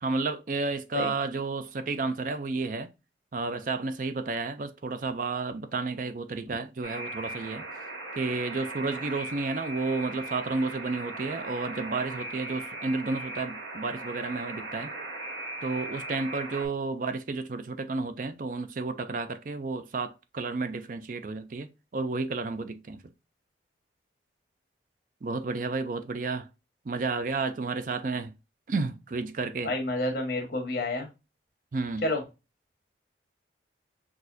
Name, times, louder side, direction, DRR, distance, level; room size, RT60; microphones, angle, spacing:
voice 1, 0.0-2.9 3.3-7.6 8.2-14.9 15.6-21.7 21.9-23.0 25.2-26.5 26.9-28.3 28.7-29.7 31.7-32.1, right 3 dB, 45° right, 0.4 m, -31 dB
Alarm, 6.8-16.7, right 2 dB, 70° right, 1.8 m, -38 dB
voice 2, 29.6-31.1 32.0-32.2, left 1 dB, 55° left, 1.4 m, -29 dB
6.1 x 2.7 x 2.6 m
head